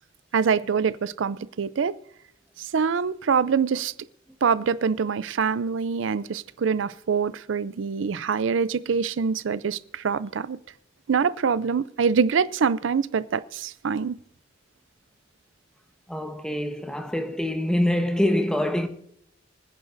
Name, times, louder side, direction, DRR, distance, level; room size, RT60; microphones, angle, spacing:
voice 1, 0.3-2.0 2.6-3.9 4.4-10.6 11.1-14.2, right 6 dB, 75° right, 0.4 m, -25 dB
voice 2, 16.1-18.9, left 1 dB, 5° left, 1.1 m, -25 dB
25.5 x 10.0 x 2.6 m
head